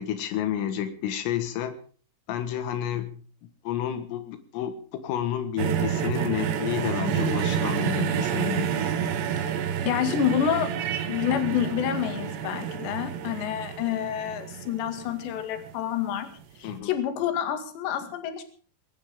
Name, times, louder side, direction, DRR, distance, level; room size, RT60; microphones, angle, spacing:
voice 1, 0.0-1.8 2.3-3.2 3.7-8.8 16.6-17.0, left 10 dB, 85° left, 9 dB, 4.2 m, -30 dB
sound 1, 5.6-15.8 16.7-16.8, right 8 dB, 65° right, 3.5 m, -29 dB
voice 2, 9.8-16.3 16.6-18.4, left 9 dB, 65° left, 8 dB, 4.2 m, -28 dB
21.0 x 18.5 x 3.7 m, 0.41 s
omnidirectional pair, 5.8 m